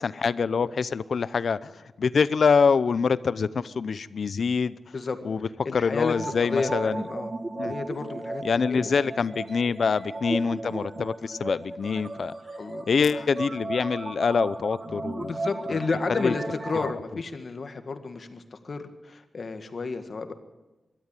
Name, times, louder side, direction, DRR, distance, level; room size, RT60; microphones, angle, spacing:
voice 1, 0.0-4.8 5.2-7.0 7.6-7.7 8.4-12.3 12.9-15.3 15.7-15.8 16.2-16.3 16.8-16.9, left 5 dB, 65° left, 17 dB, 0.7 m, -25 dB
voice 2, 5.7-7.3 7.6-8.4 8.7-8.9 12.6-12.9 13.1-13.3 14.9-20.3, left 4 dB, 50° left, 8 dB, 1.8 m, -32 dB
sound 1, 6.0-16.9, right 2 dB, 30° right, 1.1 m, -35 dB
22.5 x 13.0 x 9.1 m, 1.1 s
wide cardioid pair, 130°, 0 cm